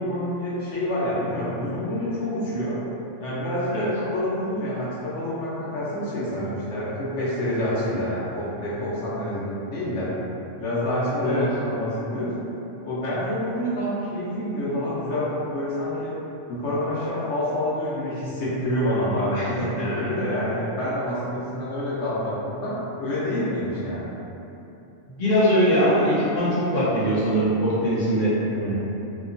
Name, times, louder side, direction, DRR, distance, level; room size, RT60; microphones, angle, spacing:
voice 1, 0.0-2.8 3.2-10.1 10.6-12.3 12.8-16.1 16.5-24.1 28.5-28.8, equal, 75° left, -10 dB, 1.0 m, -27 dB
voice 2, 19.8-20.1 25.1-28.3, equal, 50° left, -10 dB, 0.9 m, -22 dB
2.8 x 2.2 x 2.5 m, 2.9 s
omnidirectional pair, 1.3 m